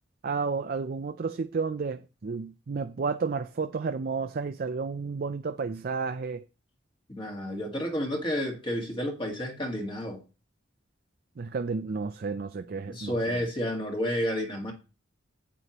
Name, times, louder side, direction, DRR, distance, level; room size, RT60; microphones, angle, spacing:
voice 1, 0.2-6.4 11.4-13.4, right 4 dB, 50° right, 0.4 m, -32 dB
voice 2, 7.1-10.2 12.9-14.7, equal, 25° left, 1.7 m, -31 dB
11.0 x 8.4 x 3.0 m
head